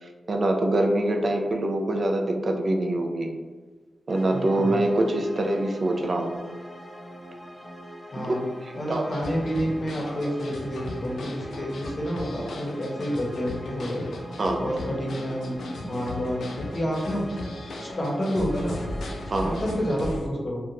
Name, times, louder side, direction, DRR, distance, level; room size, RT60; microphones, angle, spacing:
voice 1, 0.0-3.3 4.1-6.3 8.2-8.3 8.9-9.1 10.1-10.2 14.4-14.7 19.3-19.6, right 1 dB, 50° right, 2 dB, 0.3 m, -24 dB
sound 1, 4.1-20.1, equal, 5° left, 0.5 m, -43 dB
voice 2, 4.3-4.8 8.1-8.4 8.7-14.0 14.6-17.4 17.8-18.8 19.4-20.6, equal, 35° left, -2 dB, 0.7 m, -29 dB
sound 2, 8.9-20.3, left 2 dB, 80° left, 0.4 m, -37 dB
2.5 x 2.1 x 2.9 m, 1.4 s
cardioid pair, 65°, 0 cm